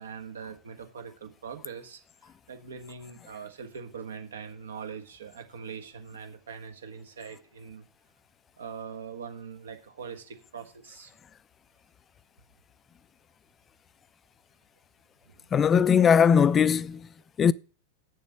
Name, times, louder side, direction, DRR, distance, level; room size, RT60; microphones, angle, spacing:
voice 1, 0.0-2.0 2.5-7.9 8.6-11.1 15.3-15.9, right 6 dB, 65° right, 1.4 m, -42 dB
voice 2, 15.5-17.1 17.4-17.5, left 7 dB, 25° left, 0.4 m, -20 dB
7.4 x 7.1 x 7.5 m
figure-of-eight pair, 90°, 0 cm